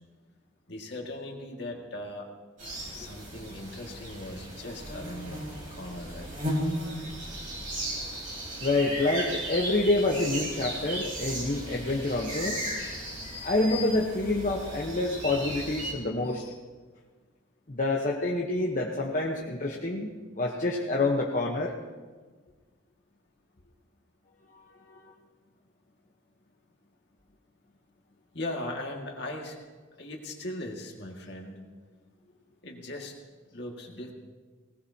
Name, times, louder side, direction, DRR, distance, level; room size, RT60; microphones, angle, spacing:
voice 1, 0.7-2.3 2.9-6.3 16.3-16.6 28.3-29.6 30.0-31.6 32.6-33.1 33.5-34.1, left 1 dB, 55° left, 1 dB, 2.0 m, -39 dB
sound 1, 2.6-15.9, equal, 40° right, 4.0 m, -36 dB
voice 2, 8.6-12.6 13.4-16.4 17.7-21.7 24.9-25.1, left 2 dB, 40° left, -2 dB, 1.1 m, -27 dB
20.0 x 18.5 x 2.9 m, 1.4 s
head